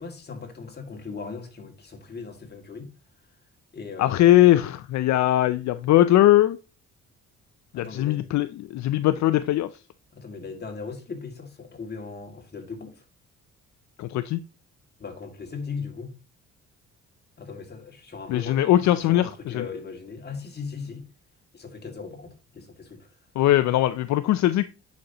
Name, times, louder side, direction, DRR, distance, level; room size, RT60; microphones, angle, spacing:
voice 1, 0.0-2.9 3.7-4.4 7.7-8.3 10.1-13.0 15.0-16.2 17.4-21.1 21.5-23.1 23.6-23.7, left 5 dB, 35° left, 2.1 m, -38 dB
voice 2, 4.0-6.6 7.7-9.7 14.0-14.4 18.3-19.6 23.4-24.7, left 14 dB, 65° left, 0.5 m, -20 dB
10.5 x 5.3 x 2.9 m
cardioid pair, 90°, 30 cm